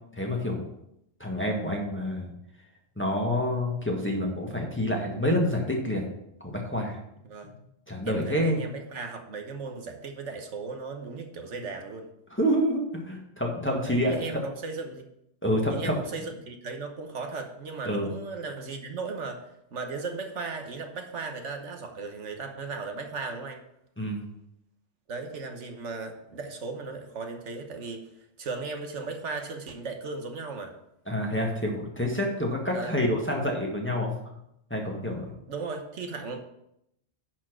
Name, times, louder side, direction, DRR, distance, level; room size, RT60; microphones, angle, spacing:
voice 1, 0.1-0.6 1.2-2.3 3.0-6.0 6.4-7.0 7.5-7.6 7.9-8.6 12.3-14.4 15.4-16.0 17.8-18.1 24.0-24.2 31.1-34.1 34.7-35.3, equal, 10° left, -1 dB, 1.6 m, -28 dB
voice 2, 8.0-12.1 13.8-15.1 15.7-19.4 19.7-23.6 25.1-28.0 28.4-30.7 32.7-33.1 35.5-36.4, right 4 dB, 80° right, 5 dB, 1.4 m, -36 dB
10.5 x 4.5 x 6.1 m, 0.79 s
omnidirectional pair, 1.2 m